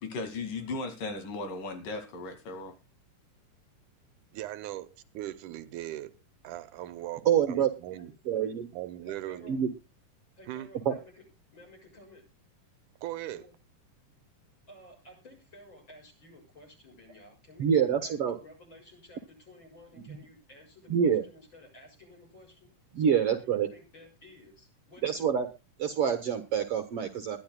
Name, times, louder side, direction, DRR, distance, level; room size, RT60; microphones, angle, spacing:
voice 1, 0.0-2.8, left 3 dB, 85° left, 3.9 m, -36 dB
voice 2, 4.3-6.1 6.4-8.1 8.7-9.5 10.5-10.7 13.0-13.4, right 14 dB, 80° right, 2.2 m, -39 dB
voice 3, 7.3-7.7 8.3-8.7 9.5-9.7 10.9-11.0 17.6-18.4 20.1-20.2 20.9-21.2 22.9-23.7 25.0-25.5 25.8-27.4, right 8 dB, 60° right, 1.8 m, -26 dB
voice 4, 9.0-9.6 10.4-11.2 11.5-12.2 13.2-13.5 14.7-22.7 23.0-25.2, left 1 dB, 35° left, 7.5 m, -54 dB
21.0 x 11.5 x 2.3 m
omnidirectional pair, 3.7 m